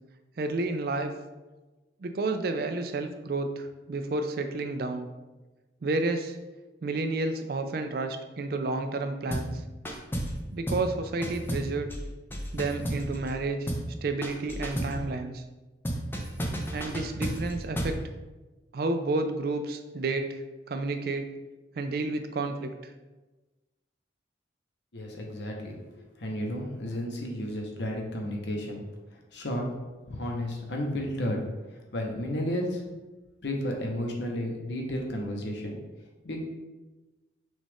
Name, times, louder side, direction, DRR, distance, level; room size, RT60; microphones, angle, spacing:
voice 1, 0.4-1.1 2.0-5.1 5.8-6.4 6.8-9.6 10.5-11.9 12.5-13.7 14.0-15.4 16.7-17.9 18.7-20.4 20.7-21.3 21.8-22.9, right 3 dB, 50° right, 7 dB, 0.4 m, -30 dB
sound 1, 9.3-9.6 9.8-10.4 10.7-10.9 11.2-13.4 13.7-13.9 14.2-15.0 15.8-18.0, equal, 10° left, 0.4 m, -32 dB
voice 2, 24.9-28.8 29.3-29.7 30.1-31.4 31.9-32.8 33.4-35.8 36.2-36.4, left 1 dB, 65° left, 1 dB, 0.8 m, -32 dB
6.1 x 2.4 x 3.5 m, 1.1 s
head